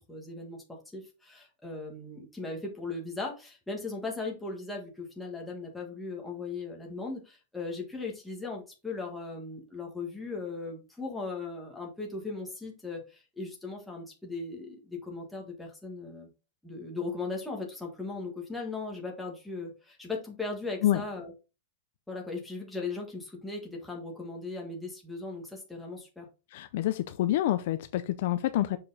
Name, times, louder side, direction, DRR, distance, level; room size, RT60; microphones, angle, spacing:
voice 1, 0.0-16.3 16.6-21.3 22.1-26.3, left 3 dB, 5° left, -1 dB, 1.6 m, -38 dB
voice 2, 26.5-28.8, left 13 dB, 45° left, 11 dB, 0.5 m, -27 dB
6.7 x 4.9 x 4.1 m, 0.29 s
supercardioid pair, 180°, 0 cm